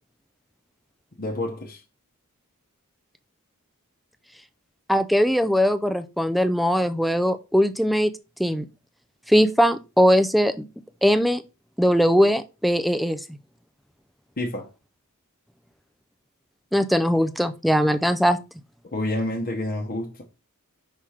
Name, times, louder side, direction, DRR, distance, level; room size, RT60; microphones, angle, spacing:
voice 1, 1.2-1.8 14.4-14.7 18.8-20.2, left 1 dB, 40° left, 0.9 m, -28 dB
voice 2, 4.9-8.1 8.4-8.7 9.3-10.5 11.0-11.4 11.8-13.2 16.7-18.4, equal, ahead, 0.4 m, -20 dB
5.7 x 3.6 x 4.9 m
head